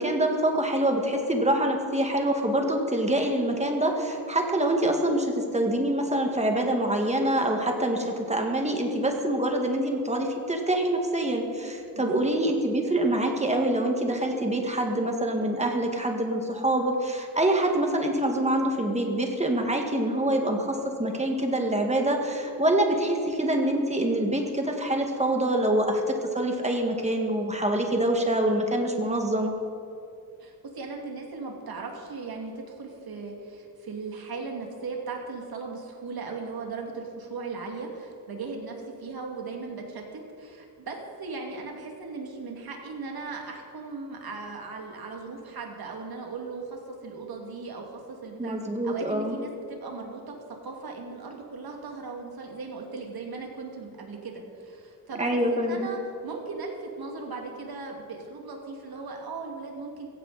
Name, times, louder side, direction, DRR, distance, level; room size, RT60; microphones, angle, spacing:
voice 1, 0.0-29.5 48.4-49.4 55.2-55.9, right 1 dB, 20° right, 2 dB, 1.9 m, -25 dB
voice 2, 11.9-12.3 30.4-48.6 48.8-60.1, right 4 dB, 80° right, 1 dB, 2.7 m, -38 dB
16.5 x 16.0 x 4.2 m, 2.6 s
wide cardioid pair, 140°, 36 cm